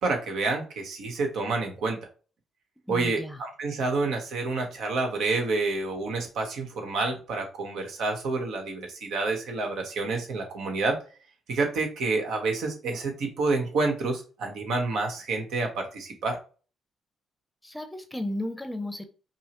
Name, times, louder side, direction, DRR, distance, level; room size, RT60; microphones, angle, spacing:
voice 1, 0.0-2.0 2.9-11.0 11.5-16.4, right 3 dB, 80° right, 3 dB, 1.1 m, -28 dB
voice 2, 2.8-3.4 17.6-19.1, left 1 dB, 10° left, 6 dB, 0.7 m, -34 dB
5.4 x 2.0 x 3.0 m, 0.36 s
cardioid pair, 90°, 0 cm